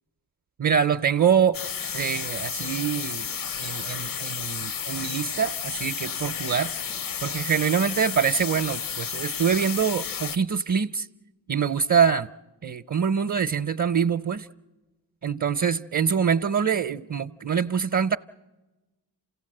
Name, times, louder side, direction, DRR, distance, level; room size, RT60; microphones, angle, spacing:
voice 1, 0.6-1.6 1.9-3.3 3.6-6.7 7.2-11.1 11.5-12.3 12.6-14.5 15.2-18.2, right 7 dB, 45° right, 0.7 m, -24 dB
sound 1, 1.5-10.4, left 7 dB, 55° left, 0.7 m, -32 dB
28.0 x 17.0 x 7.7 m
cardioid pair, 45°, 41 cm